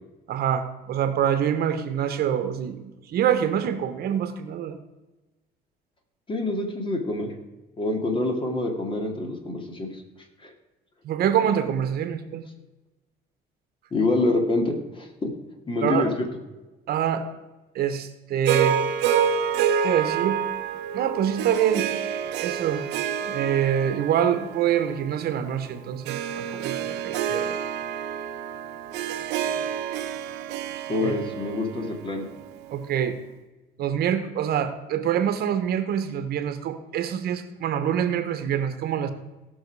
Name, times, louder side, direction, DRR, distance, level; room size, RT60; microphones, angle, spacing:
voice 1, 0.3-4.8 11.0-12.4 15.8-16.1 16.9-17.2 17.7-18.8 19.8-20.4 20.9-21.9 22.4-22.8 23.2-27.6 31.0-31.1 32.7-33.2 33.8-39.1, right 9 dB, 65° right, 9 dB, 1.2 m, -25 dB
voice 2, 6.3-7.3 7.8-10.0 10.4-10.5 13.9-15.3 15.7-16.3 30.9-32.3, left 2 dB, 30° left, 3 dB, 2.5 m, -26 dB
Harp, 18.4-32.8, right 8 dB, 90° right, 0.9 m, -28 dB
17.0 x 6.2 x 4.8 m, 1.1 s
cardioid pair, 110°, 17 cm